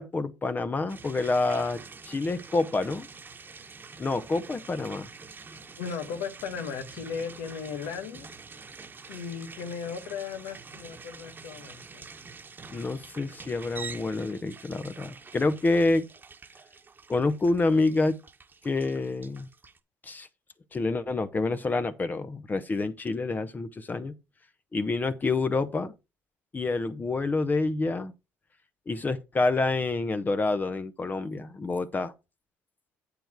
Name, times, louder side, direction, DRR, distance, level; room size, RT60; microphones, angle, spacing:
voice 1, 0.0-3.1 4.0-5.1 12.7-16.1 17.1-18.2 18.6-19.5 20.0-20.3 20.7-24.1 24.7-25.9 26.5-28.1 28.9-32.1, left 3 dB, 30° left, 0.8 m, -27 dB
sound 1, 0.9-19.8, right 4 dB, 30° right, 1.2 m, -46 dB
voice 2, 5.8-8.3 9.1-12.1, left 6 dB, 85° left, 1.5 m, -36 dB
7.9 x 6.9 x 4.6 m
supercardioid pair, 75°, 6 cm